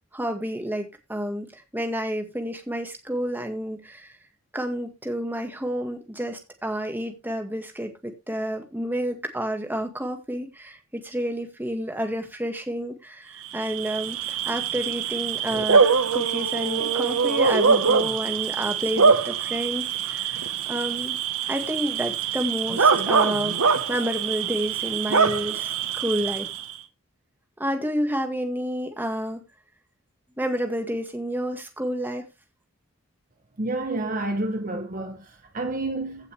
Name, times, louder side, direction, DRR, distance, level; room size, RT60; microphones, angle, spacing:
voice 1, 0.1-4.2 4.5-15.9 16.1-20.4 20.7-21.2 21.5-26.5 27.6-29.4 30.4-32.3, equal, 10° right, 1.9 m, -30 dB
Bark / Cricket, 13.5-26.8, right 5 dB, 75° right, 1.1 m, -24 dB
voice 2, 33.6-36.3, right 2 dB, 35° right, 0.9 m, -29 dB
16.0 x 5.7 x 3.3 m
head